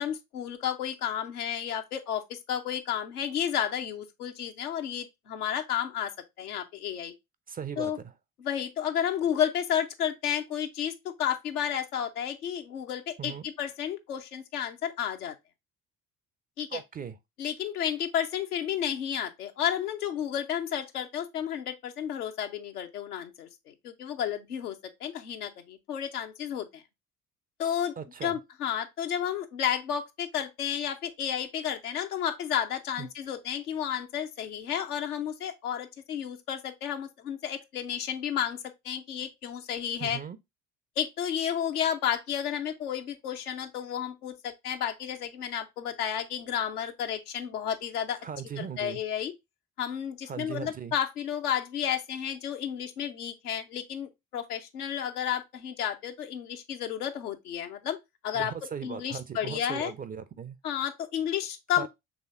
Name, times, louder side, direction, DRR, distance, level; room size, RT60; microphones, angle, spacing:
voice 1, 0.0-6.1 6.4-7.1 7.8-8.0 8.4-15.3 16.6-16.8 17.4-26.8 27.6-27.9 28.2-38.6 38.8-40.2 41.0-48.2 48.6-49.3 49.8-58.0 58.2-58.5 58.8-59.9 60.6-61.9, left 9 dB, 80° left, 0.7 m, -32 dB
voice 2, 7.5-8.1 13.2-13.5 16.7-17.2 28.0-28.4 33.0-33.1 40.0-40.4 48.2-49.0 50.3-50.9 58.3-60.6 61.8-61.9, right 7 dB, 20° right, 0.4 m, -38 dB
6.2 x 3.3 x 2.5 m
figure-of-eight pair, 50°, 45 cm